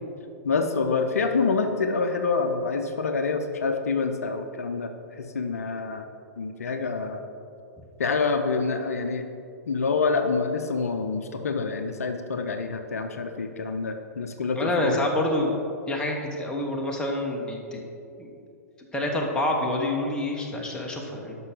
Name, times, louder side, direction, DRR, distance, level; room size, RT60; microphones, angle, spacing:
voice 1, 0.4-6.1 6.4-7.3 8.0-9.3 9.7-15.0, left 4 dB, 65° left, 6 dB, 0.7 m, -27 dB
voice 2, 14.5-17.8 18.2-18.3 18.8-21.4, left 1 dB, 10° left, 0 dB, 1.2 m, -27 dB
12.0 x 5.9 x 3.8 m, 2.5 s
figure-of-eight pair, 105°, 9 cm